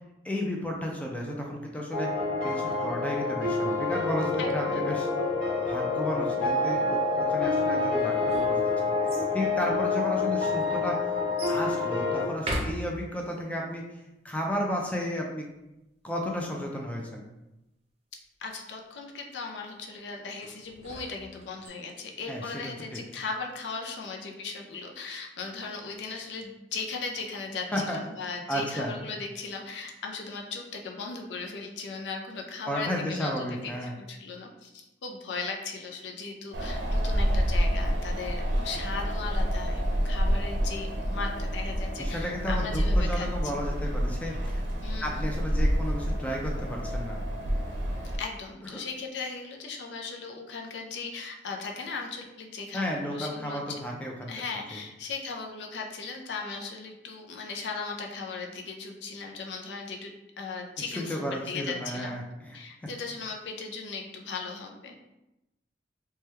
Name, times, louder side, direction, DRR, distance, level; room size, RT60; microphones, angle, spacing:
voice 1, 0.2-5.1 5.6-7.0 7.3-11.1 11.5-15.5 16.0-17.2 22.3-22.4 22.9-23.0 27.7-28.0 28.5-28.9 32.7-33.9 42.0-44.6 45.0-47.2 48.7-48.8 52.7-54.3 61.0-62.6, equal, 10° left, -1 dB, 0.4 m, -33 dB
sound 1, 1.9-12.2, left 3 dB, 40° left, 1.2 m, -27 dB
voice 2, 4.4-5.0 18.4-43.3 44.8-45.3 48.2-53.6 54.3-62.2 62.5-65.0, left 4 dB, 75° left, 2 dB, 0.5 m, -37 dB
sound 2, 8.0-9.3 10.1-10.2 11.4-11.7 12.3-13.4 20.4-21.7, right 1 dB, 35° right, 0.6 m, -37 dB
Wind, 36.5-48.2, equal, 80° right, 0.6 m, -28 dB
3.1 x 2.2 x 3.2 m, 0.94 s
head